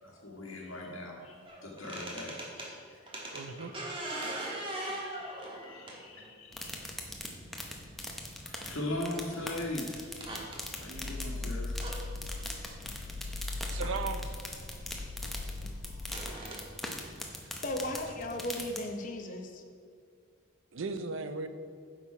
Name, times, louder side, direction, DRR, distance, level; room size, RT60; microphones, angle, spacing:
voice 1, 0.0-3.6 4.0-6.8 8.4-10.5 10.8-13.1, left 1 dB, 75° left, -2 dB, 1.6 m, -41 dB
sound 1, 1.5-2.7 3.1-6.3 7.4-7.5 9.1-9.3 9.7-9.8 10.1-10.6 11.8-12.0 13.8-13.9 14.6-14.7 16.0-16.6, right 1 dB, 25° right, 1.4 m, -40 dB
voice 2, 3.3-3.7 13.7-14.2 20.7-21.5, right 4 dB, 65° right, 9 dB, 0.5 m, -36 dB
sound 2, 6.5-18.8, left 1 dB, ahead, 0.7 m, -42 dB
sound 3, 10.9-16.2, left 2 dB, 55° left, 0.5 m, -39 dB
voice 3, 17.6-19.6, left 1 dB, 40° left, 3 dB, 0.8 m, -36 dB
9.9 x 6.2 x 4.7 m, 2.3 s
head